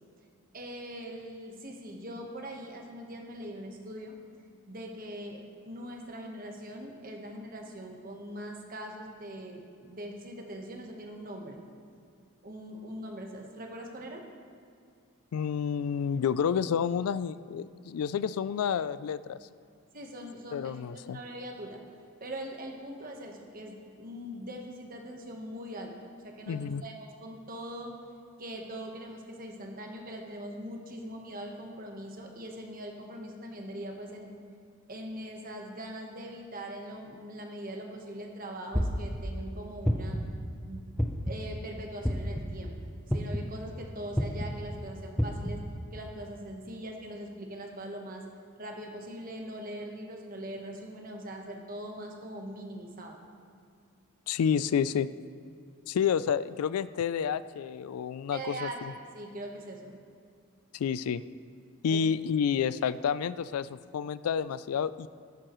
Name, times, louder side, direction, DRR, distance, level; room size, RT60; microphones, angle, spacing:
voice 1, 0.5-4.2 4.7-5.4 5.6-11.6 12.4-14.2 19.9-21.8 22.2-27.9 28.4-34.3 34.9-40.2 40.7-40.9 41.2-42.7 43.1-45.6 45.9-48.2 48.6-53.2 58.3-60.0 61.9-62.0, right 1 dB, 40° right, 2 dB, 1.2 m, -41 dB
voice 2, 15.3-19.4 20.5-21.2 26.5-26.8 54.3-55.1 55.9-58.7 60.7-61.2 61.8-65.1, left 7 dB, 85° left, 17 dB, 0.3 m, -29 dB
sound 1, 38.7-39.2 39.8-40.3 41.0-41.4 42.0-42.4 43.1-43.5 44.1-44.5 45.2-45.5, equal, 5° left, 0.6 m, -28 dB
13.5 x 11.0 x 3.1 m, 2.3 s
head